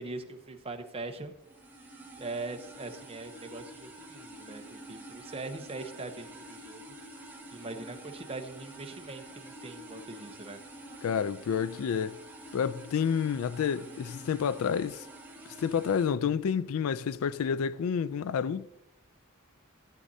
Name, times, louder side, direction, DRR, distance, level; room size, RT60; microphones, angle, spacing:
voice 1, 0.0-1.3 2.2-6.9 7.5-10.6, right 3 dB, 25° right, 0.8 m, -41 dB
sound 1, 1.4-16.1, right 1 dB, 10° right, 1.1 m, -48 dB
voice 2, 11.0-12.2 12.5-15.1 15.6-18.7, left 7 dB, 70° left, 0.3 m, -29 dB
14.5 x 8.4 x 2.7 m
head